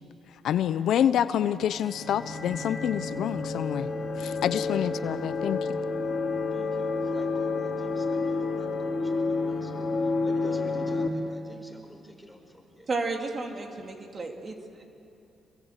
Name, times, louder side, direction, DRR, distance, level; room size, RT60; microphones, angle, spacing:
voice 1, 0.4-3.9 4.2-5.6, left 10 dB, 75° left, 13 dB, 0.7 m, -27 dB
sound 1, 1.5-11.1, left 3 dB, 40° left, 3.2 m, -30 dB
voice 2, 6.5-12.9 13.6-13.7, left 1 dB, ahead, 3 dB, 5.0 m, -47 dB
voice 3, 12.9-14.6, right 3 dB, 40° right, 3 dB, 2.9 m, -32 dB
26.0 x 22.0 x 8.3 m, 2.7 s
cardioid pair, 90°, 0 cm